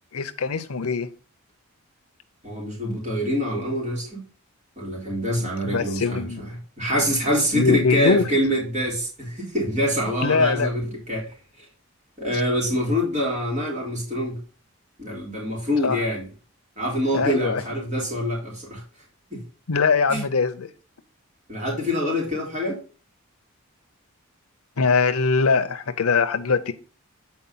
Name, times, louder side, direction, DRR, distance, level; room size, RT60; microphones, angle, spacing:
voice 1, 0.1-1.1 5.4-6.4 7.5-8.3 10.2-10.7 15.8-16.0 17.1-17.6 19.7-20.7 24.8-26.7, left 4 dB, 90° left, 0.7 m, -22 dB
voice 2, 2.4-4.2 4.8-6.4 6.8-11.3 12.2-14.4 15.0-16.3 16.8-18.8 19.3-19.4 20.1-20.2 21.5-22.8, equal, 35° right, 3.3 m, -25 dB
8.2 x 4.5 x 5.6 m
head